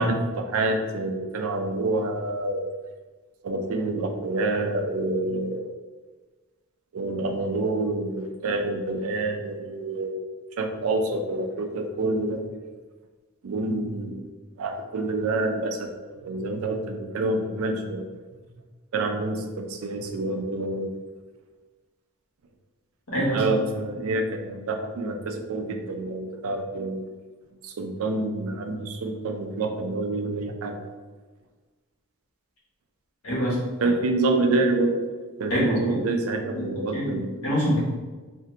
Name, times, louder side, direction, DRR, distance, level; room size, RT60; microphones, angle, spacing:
voice 1, 0.0-2.6 3.4-5.7 6.9-10.2 10.6-12.4 13.4-14.3 14.6-18.0 18.9-20.9 23.3-27.1 27.6-30.8 33.8-35.0 35.4-37.3, right 2 dB, 80° right, 4 dB, 0.4 m, -27 dB
voice 2, 23.1-23.4 33.2-33.6 35.5-35.9 36.5-36.7 36.9-37.2 37.4-37.8, equal, 85° left, -6 dB, 1.2 m, -24 dB
2.6 x 2.2 x 3.7 m, 1.3 s
head